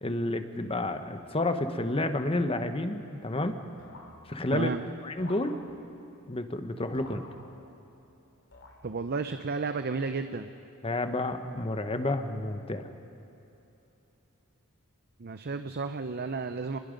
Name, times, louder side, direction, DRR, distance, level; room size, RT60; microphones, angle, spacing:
voice 1, 0.0-3.6 4.3-4.7 5.0-5.6 6.3-7.2 10.8-12.9, left 2 dB, 25° left, 8 dB, 1.1 m, -30 dB
sound 1, 3.8-4.7 5.2-6.1 6.9-8.0 8.5-9.2, left 2 dB, 60° left, 2.9 m, -51 dB
voice 2, 8.8-10.5 15.2-16.8, right 4 dB, 45° right, 9 dB, 0.6 m, -32 dB
29.5 x 21.0 x 5.3 m, 3.0 s
head